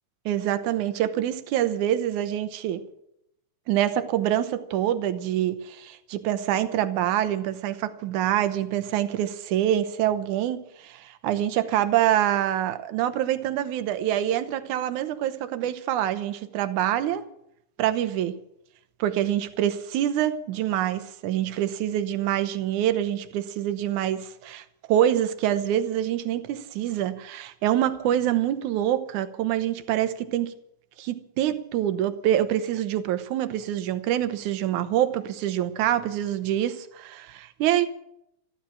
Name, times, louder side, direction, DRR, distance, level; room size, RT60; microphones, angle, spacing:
voice 1, 0.3-2.8 3.7-17.3 17.8-18.4 19.0-30.5 31.0-37.9, right 11 dB, 85° right, 2.4 m, -26 dB
15.0 x 12.0 x 7.2 m
omnidirectional pair, 3.4 m